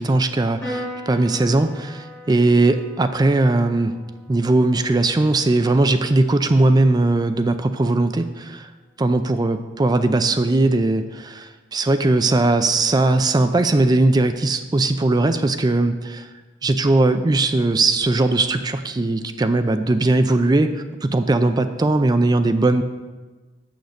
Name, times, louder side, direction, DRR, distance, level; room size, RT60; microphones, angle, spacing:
voice 1, 0.0-4.0 4.3-8.7 9.0-16.3 16.6-22.8, right 2 dB, 20° right, 9 dB, 0.4 m, -19 dB
Piano, 0.6-7.3, equal, 5° left, 3.3 m, -39 dB
6.5 x 6.5 x 6.9 m, 1.2 s
head